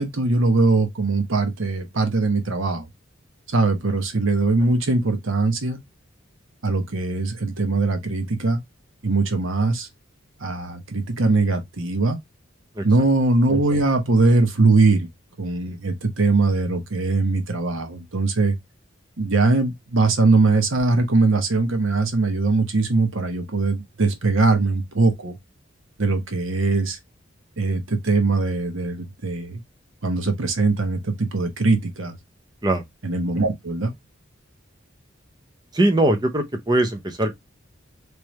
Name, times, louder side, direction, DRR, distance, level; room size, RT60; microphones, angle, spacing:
voice 1, 0.0-2.9 3.5-5.8 6.6-8.6 9.0-9.9 10.4-12.2 12.8-15.1 15.4-18.6 19.2-25.3 26.0-27.0 27.6-29.6 30.0-32.2 33.0-33.9, right 3 dB, 80° right, 1.0 m, -21 dB
voice 2, 35.7-37.3, right 1 dB, 20° right, 0.6 m, -21 dB
3.3 x 3.2 x 3.0 m
head